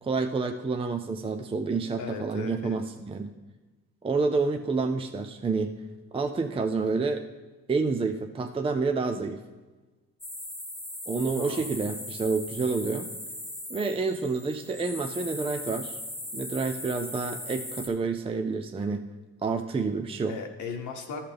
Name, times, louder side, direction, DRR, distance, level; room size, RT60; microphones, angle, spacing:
voice 1, 0.0-3.3 4.0-5.7 6.1-7.2 7.7-9.4 11.1-13.1 13.7-16.0 16.3-19.0 19.4-20.3, right 4 dB, 20° right, 5 dB, 0.5 m, -28 dB
voice 2, 2.0-2.8 11.3-11.7 20.3-21.2, left 5 dB, 75° left, 3 dB, 1.1 m, -37 dB
sound 1, 10.2-17.9, left 1 dB, 5° left, 1.2 m, -39 dB
13.5 x 5.7 x 3.4 m, 1.2 s
cardioid pair, 90°, 30 cm